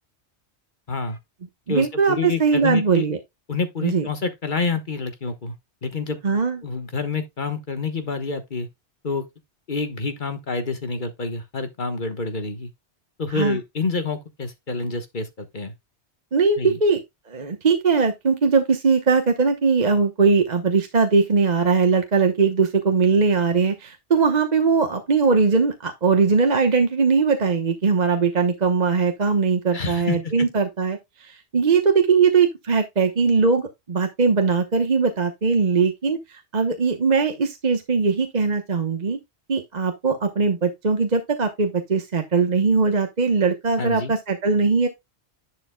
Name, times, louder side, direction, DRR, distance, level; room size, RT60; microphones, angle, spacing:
voice 1, 0.9-1.2 1.7-3.0 3.5-5.5 5.8-6.3 6.6-8.7 9.0-9.2 9.7-12.7 13.2-15.7 16.6-16.8 29.7-30.5 43.8-44.1, left 4 dB, 45° left, 1.4 m, -28 dB
voice 2, 1.7-3.2 3.8-4.1 6.2-6.6 13.3-13.6 16.3-17.0 17.3-39.2 39.5-44.9, right 5 dB, 40° right, 1.1 m, -20 dB
11.0 x 6.2 x 2.2 m
omnidirectional pair, 1.2 m